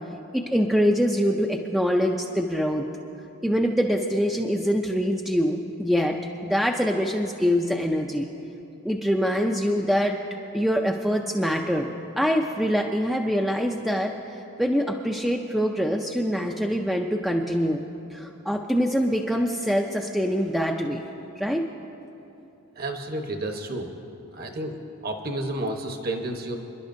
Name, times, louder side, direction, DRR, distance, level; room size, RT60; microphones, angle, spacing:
voice 1, 0.3-2.9 3.4-8.3 8.8-10.2 10.5-17.8 18.1-21.1 21.4-21.6, equal, ahead, 1 dB, 0.4 m, -24 dB
voice 2, 22.8-23.9 24.3-26.6, right 1 dB, 40° right, 4 dB, 1.0 m, -31 dB
27.0 x 11.0 x 2.6 m, 2.9 s
head